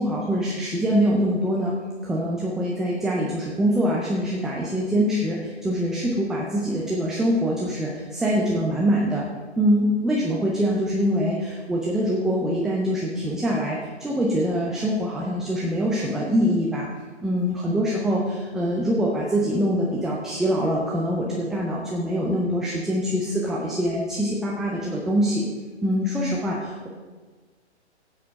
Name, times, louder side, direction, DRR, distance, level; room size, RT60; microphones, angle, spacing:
voice 1, 0.0-1.7 2.0-9.2 9.6-16.9 17.2-25.5 25.8-26.9, equal, ahead, -3 dB, 0.3 m, -24 dB
11.5 x 8.7 x 5.1 m, 1.4 s
hypercardioid pair, 130°, 35 cm